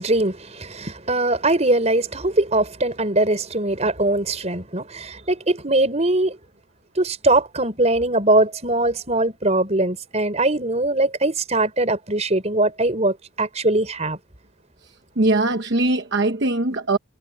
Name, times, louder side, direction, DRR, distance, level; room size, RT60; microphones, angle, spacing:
voice 1, 0.0-6.4 6.9-14.2, right 2 dB, 35° right, 4.9 m, -21 dB
voice 2, 15.2-17.0, right 2 dB, 55° right, 1.1 m, -21 dB
head